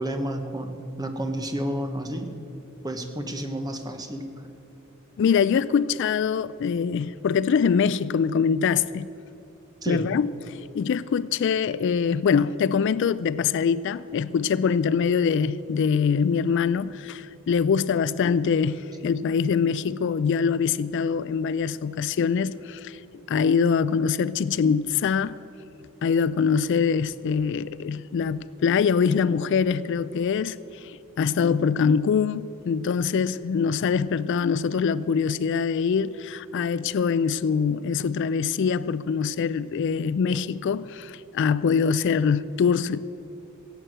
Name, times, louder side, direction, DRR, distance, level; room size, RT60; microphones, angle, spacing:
voice 1, 0.0-2.3 2.8-4.2 9.8-10.0, right 1 dB, 20° right, 1.1 m, -30 dB
voice 2, 5.2-9.1 9.9-23.0 23.3-25.3 26.0-43.0, left 6 dB, 60° left, 0.3 m, -24 dB
16.5 x 8.2 x 7.6 m
head